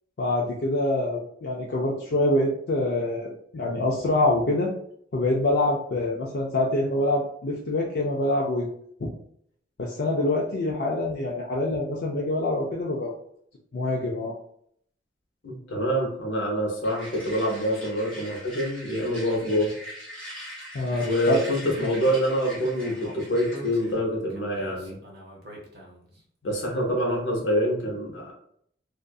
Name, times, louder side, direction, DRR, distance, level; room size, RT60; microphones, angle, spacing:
voice 1, 0.2-4.7 5.1-8.7 9.0-9.1 9.8-13.1 13.7-14.3 20.7-21.4 21.8-21.9, left 2 dB, 55° left, -3 dB, 0.4 m, -25 dB
voice 2, 15.4-19.7 21.0-25.0 26.4-28.3, equal, 80° left, -1 dB, 0.8 m, -26 dB
sound 1, 16.8-24.0, equal, 5° left, 1.2 m, -42 dB
Speech, 22.8-26.2, right 1 dB, 55° right, 0.6 m, -44 dB
2.5 x 2.4 x 2.2 m, 0.67 s
head